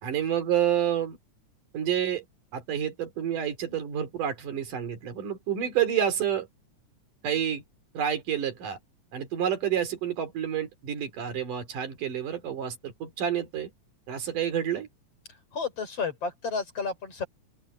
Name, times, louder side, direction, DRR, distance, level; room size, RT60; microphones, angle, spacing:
voice 1, 0.0-1.2 1.7-2.2 2.5-6.5 7.2-7.6 7.9-8.8 9.1-13.7 14.1-14.9, right 9 dB, 85° right, 4.4 m, -29 dB
voice 2, 15.5-17.3, left 5 dB, 50° left, 5.6 m, -31 dB
open air
omnidirectional pair, 3.6 m